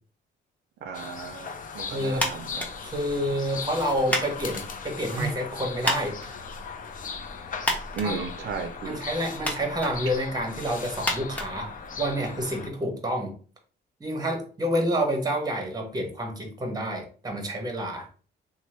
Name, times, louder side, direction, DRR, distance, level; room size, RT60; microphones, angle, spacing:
voice 1, 0.8-2.6 5.1-5.3 7.9-9.0, right 5 dB, 60° right, 5 dB, 0.4 m, -34 dB
sound 1, 0.9-12.7, left 5 dB, 45° left, 0.4 m, -38 dB
voice 2, 1.9-2.3 2.8-6.3 8.0-8.2 8.8-13.3 14.0-18.1, equal, 20° right, 3 dB, 0.9 m, -29 dB
sound 2, 2.1-12.3, equal, 5° left, 0.8 m, -35 dB
2.9 x 2.0 x 3.0 m, 0.40 s
cardioid pair, 90°, 20 cm